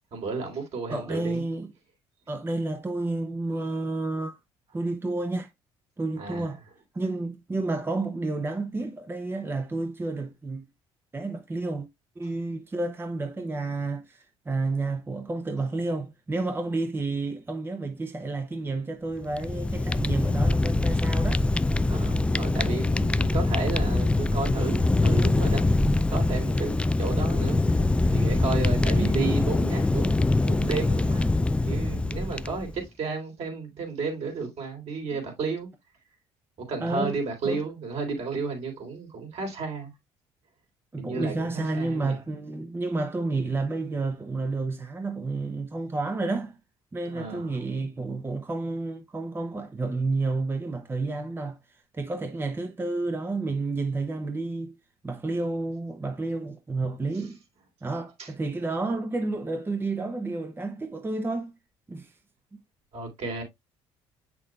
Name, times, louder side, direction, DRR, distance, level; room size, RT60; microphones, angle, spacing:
voice 1, 0.1-1.4 6.2-6.5 21.9-25.7 26.1-27.6 28.1-35.7 36.7-39.9 41.0-42.1 47.0-47.6 58.2-58.3 62.9-63.4, right 4 dB, 60° right, 3.6 m, -33 dB
voice 2, 0.9-1.7 2.3-4.4 4.7-5.5 6.0-6.6 6.9-10.7 11.1-11.9 12.2-21.5 28.9-29.2 35.1-35.2 36.8-37.2 37.4-37.6 40.9-46.6 46.9-54.7 55.0-57.4 57.8-61.5 61.9-62.1, right 3 dB, 20° right, 0.8 m, -30 dB
Fire, 19.2-32.8, left 2 dB, 10° left, 0.3 m, -24 dB
7.4 x 6.1 x 2.3 m
supercardioid pair, 75°, 12 cm